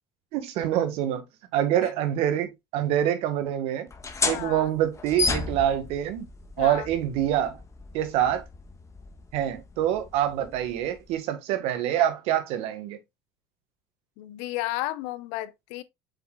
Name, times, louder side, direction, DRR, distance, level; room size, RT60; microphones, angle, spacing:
voice 1, 0.3-1.2 1.5-3.9 4.2-6.3 6.6-7.6 7.9-8.4 9.3-13.0, right 11 dB, 70° right, 1.5 m, -26 dB
sound 1, 3.9-11.2, left 4 dB, 30° left, 1.4 m, -34 dB
voice 2, 4.3-4.7 6.6-6.9 8.2-8.3 14.2-15.8, left 17 dB, 75° left, 0.7 m, -33 dB
7.3 x 5.6 x 2.3 m
hypercardioid pair, 75°, 11 cm